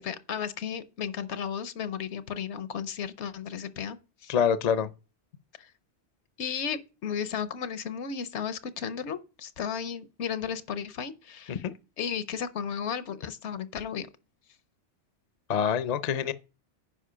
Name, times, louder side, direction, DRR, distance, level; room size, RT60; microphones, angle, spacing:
voice 1, 0.0-4.0 4.2-4.3 5.6-5.7 6.4-11.6 12.0-14.1, left 7 dB, 75° left, 1.0 m, -34 dB
voice 2, 4.3-4.9 11.5-11.7 15.5-16.3, left 7 dB, 45° left, 0.5 m, -26 dB
10.0 x 4.9 x 5.0 m
omnidirectional pair, 1.2 m